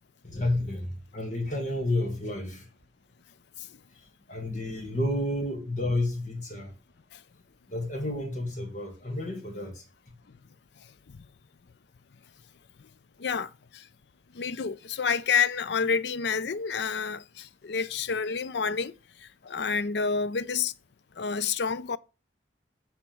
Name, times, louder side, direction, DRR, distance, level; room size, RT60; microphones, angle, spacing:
voice 1, 0.2-2.7 4.3-6.7 7.7-9.8, left 1 dB, 40° left, 2.1 m, -30 dB
voice 2, 13.2-13.9 14.3-18.9 19.4-20.7 21.2-22.0, left 5 dB, 70° left, 0.5 m, -29 dB
7.8 x 4.3 x 6.9 m
head